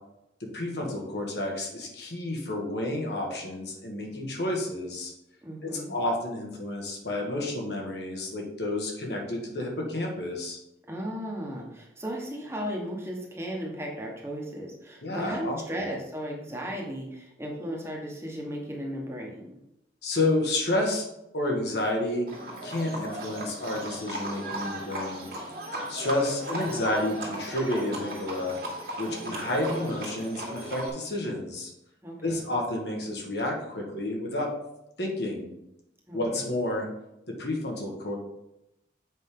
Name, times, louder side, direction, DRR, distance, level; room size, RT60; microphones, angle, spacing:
voice 1, 0.5-5.1 5.6-10.6 15.0-15.8 20.0-21.0 21.3-22.3 22.6-25.3 25.9-28.6 29.0-31.7 32.2-34.5 35.0-35.5 36.1-36.9 37.4-38.2, left 1 dB, 75° left, 0 dB, 1.7 m, -30 dB
voice 2, 5.4-5.9 10.9-19.5 26.3-26.7 29.0-29.5 32.0-32.5 36.1-36.5, equal, 15° right, -1 dB, 1.2 m, -36 dB
Livestock farm animals working animals, 22.3-30.9, right 1 dB, 55° right, 1.8 m, -36 dB
7.6 x 5.2 x 3.7 m, 0.85 s
head